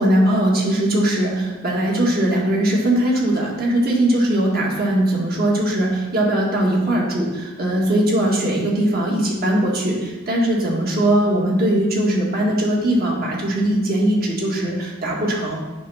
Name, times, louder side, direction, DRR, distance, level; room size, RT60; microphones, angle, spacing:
voice 1, 0.0-15.6, right 1 dB, 45° right, -3 dB, 1.8 m, -20 dB
9.1 x 3.6 x 5.6 m, 1.2 s
head